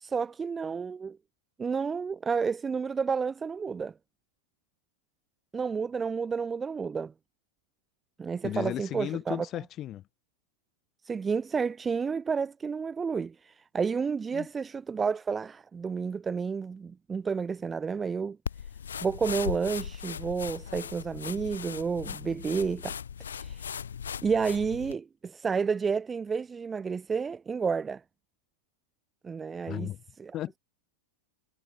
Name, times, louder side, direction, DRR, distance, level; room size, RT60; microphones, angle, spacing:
voice 1, 0.0-1.2 1.6-3.9 5.5-7.1 8.2-9.4 11.1-18.4 19.0-23.0 23.2-23.6 24.2-28.0 29.2-29.9 30.2-30.3, right 5 dB, 15° right, 0.9 m, -30 dB
voice 2, 8.4-10.1 14.3-14.5 29.7-30.0 30.3-30.6, left 13 dB, 30° left, 5.9 m, -35 dB
sound 1, 18.5-25.0, left 7 dB, 70° left, 2.4 m, -38 dB
figure-of-eight pair, 90°, 0 cm